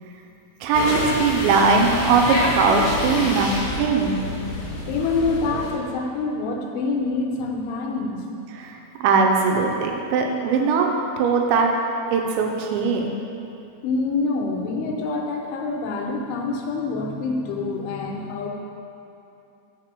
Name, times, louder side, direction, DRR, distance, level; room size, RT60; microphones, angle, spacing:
voice 1, 0.6-4.2 8.5-10.9 11.2-11.7 12.1-13.1, right 4 dB, 80° right, 1 dB, 2.8 m, -20 dB
sound 1, 0.7-5.7, left 2 dB, 75° left, 3.8 m, -27 dB
voice 2, 4.9-8.3 13.8-18.5, left 3 dB, 90° left, 1 dB, 3.1 m, -26 dB
6.7 x 4.4 x 6.5 m, 2.8 s
omnidirectional pair, 5.4 m